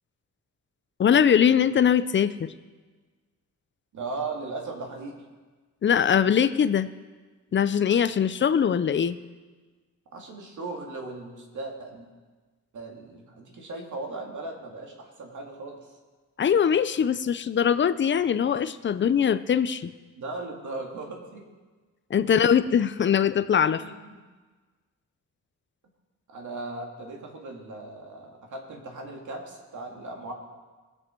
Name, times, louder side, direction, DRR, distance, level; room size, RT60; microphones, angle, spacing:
voice 1, 1.0-2.5 5.8-6.9 7.5-9.2 16.4-19.9 22.1-23.8, left 8 dB, 35° left, 13 dB, 0.4 m, -22 dB
voice 2, 3.9-5.2 10.1-12.1 12.7-15.9 20.2-21.4 22.2-22.4 23.8-24.2 26.3-30.3, right 2 dB, 65° right, 1 dB, 2.2 m, -37 dB
20.5 x 7.7 x 4.4 m, 1.3 s
wide cardioid pair, 165°, 33 cm